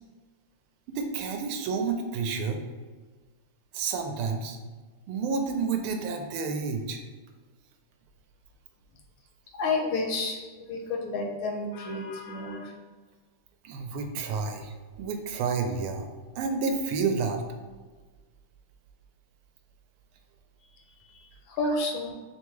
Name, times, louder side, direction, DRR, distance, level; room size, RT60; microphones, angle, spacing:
voice 1, 0.9-2.6 3.7-4.6 5.1-7.0 13.6-14.7 15.0-16.1 16.4-17.4, right 5 dB, 80° right, 4 dB, 1.4 m, -30 dB
voice 2, 9.6-12.7 21.1-22.1, left 3 dB, 75° left, 1 dB, 1.3 m, -31 dB
3.7 x 3.6 x 3.0 m, 1.3 s
omnidirectional pair, 2.4 m